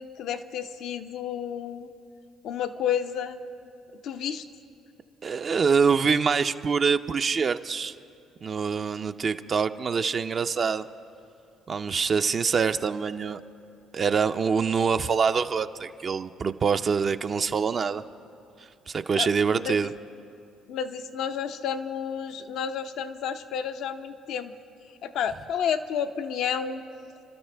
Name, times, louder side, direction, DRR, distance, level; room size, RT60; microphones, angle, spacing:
voice 1, 0.0-1.9 2.4-3.4 4.0-4.4 19.2-19.9 20.7-24.5 25.0-26.8, left 8 dB, 70° left, 9 dB, 0.6 m, -31 dB
voice 2, 5.2-8.0 8.4-10.8 11.7-13.4 13.9-18.0 18.9-19.9, right 5 dB, 45° right, 8 dB, 0.4 m, -25 dB
29.5 x 13.0 x 3.4 m, 2.6 s
supercardioid pair, 75°, 0 cm